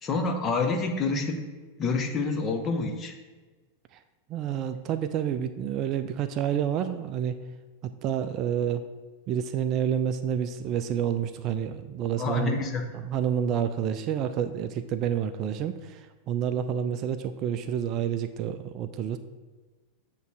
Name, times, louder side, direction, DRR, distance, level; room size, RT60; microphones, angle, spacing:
voice 1, 0.0-1.5 1.8-3.1 12.2-12.8, left 4 dB, 25° left, 4 dB, 0.9 m, -27 dB
voice 2, 4.3-7.4 7.8-8.8 9.3-12.6 12.9-19.2, right 9 dB, 35° right, 10 dB, 0.4 m, -29 dB
8.0 x 3.2 x 6.1 m, 1.3 s
figure-of-eight pair, 90°, 0 cm